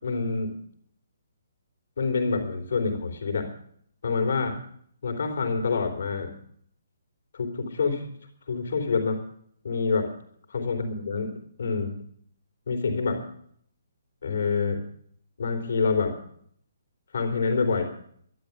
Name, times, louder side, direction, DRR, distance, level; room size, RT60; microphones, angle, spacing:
voice 1, 0.0-0.6 2.0-3.5 4.0-4.6 5.0-6.3 7.3-8.1 8.5-9.2 9.6-10.1 10.5-11.3 11.6-12.0 12.7-13.2 14.2-14.8 15.4-16.2 17.1-17.8, left 4 dB, 55° left, 2 dB, 3.8 m, -26 dB
12.5 x 11.0 x 8.4 m, 0.63 s
figure-of-eight pair, 135°, 0 cm